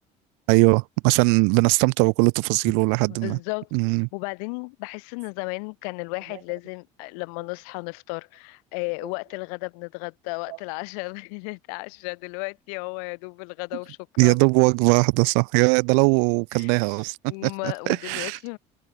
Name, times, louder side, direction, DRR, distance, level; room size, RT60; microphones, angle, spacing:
voice 1, 0.5-3.4 3.7-4.1 14.2-17.2 17.4-18.4, right 40 dB or more, 85° right, 0.6 m, -20 dB
voice 2, 2.9-3.7 4.1-14.4 16.6-16.8 17.3-18.6, left 39 dB, 90° left, 5.3 m, -34 dB
supercardioid pair, 105°, 18 cm